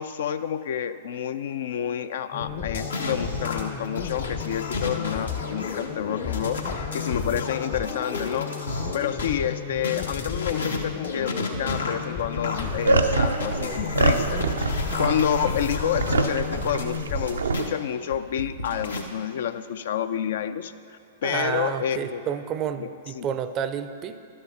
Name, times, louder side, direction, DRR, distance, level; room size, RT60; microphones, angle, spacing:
voice 1, 0.0-8.5 8.9-22.2 22.8-22.9 23.1-23.3, left 9 dB, 65° left, 12 dB, 0.4 m, -29 dB
sound 1, 2.3-17.2, left 7 dB, 40° left, 0.7 m, -34 dB
sound 2, 2.4-9.3 9.8-17.7 18.1-19.0, left 3 dB, 80° left, 1.0 m, -33 dB
sound 3, 12.6-17.6, right 3 dB, 80° right, 0.5 m, -25 dB
voice 2, 21.2-24.2, right 8 dB, 35° right, 11 dB, 0.5 m, -30 dB
11.5 x 6.6 x 5.5 m, 2.4 s
hypercardioid pair, 110°, 0 cm